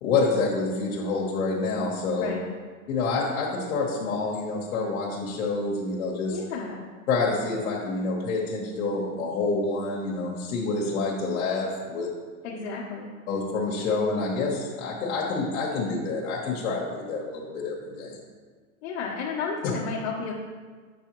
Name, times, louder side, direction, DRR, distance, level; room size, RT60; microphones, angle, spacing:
voice 1, 0.0-2.3 2.9-6.4 7.1-12.1 13.3-18.2, left 3 dB, 75° left, -4 dB, 1.3 m, -27 dB
voice 2, 6.3-6.8 12.4-13.1 18.8-20.3, left 5 dB, 55° left, -6 dB, 1.3 m, -32 dB
7.8 x 5.4 x 3.1 m, 1.5 s
supercardioid pair, 145°, 41 cm